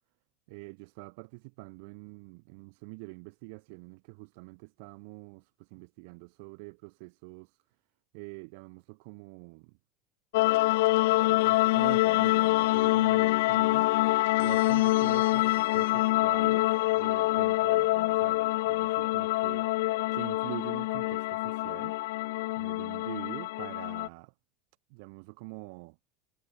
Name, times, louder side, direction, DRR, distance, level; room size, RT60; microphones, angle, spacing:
voice 1, 0.5-7.6 8.1-9.8 11.1-13.9 14.4-19.7 20.1-22.0 22.6-24.3 24.9-26.0, right 31 dB, 70° right, 0.9 m, -45 dB
sound 1, 10.3-24.1, left 19 dB, 80° left, 0.4 m, -26 dB
supercardioid pair, 100°, 0 cm